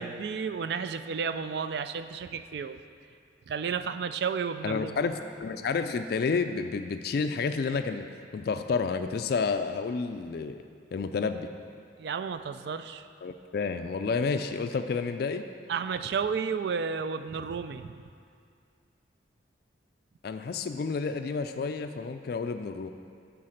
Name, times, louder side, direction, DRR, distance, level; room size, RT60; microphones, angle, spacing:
voice 1, 0.0-2.8 3.5-5.0 12.0-13.1 15.7-18.0, right 6 dB, 60° right, 11 dB, 0.3 m, -32 dB
voice 2, 4.6-8.1 8.3-10.6 10.9-11.5 13.2-15.4 20.2-22.9, left 4 dB, 55° left, 8 dB, 0.3 m, -30 dB
9.9 x 4.0 x 6.4 m, 2.3 s
head